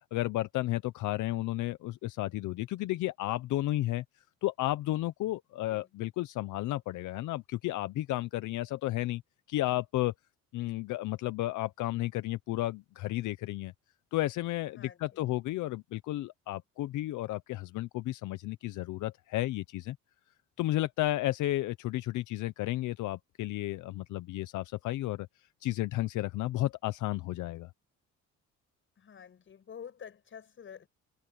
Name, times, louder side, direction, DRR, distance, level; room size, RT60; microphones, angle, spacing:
voice 1, 0.1-4.0 4.4-9.2 9.5-10.1 10.5-13.7 14.1-20.0 20.6-25.3 25.6-27.7, left 16 dB, 80° left, 0.8 m, -32 dB
voice 2, 14.7-15.3 29.0-30.9, left 7 dB, 40° left, 7.1 m, -49 dB
cardioid pair, 135°, 30 cm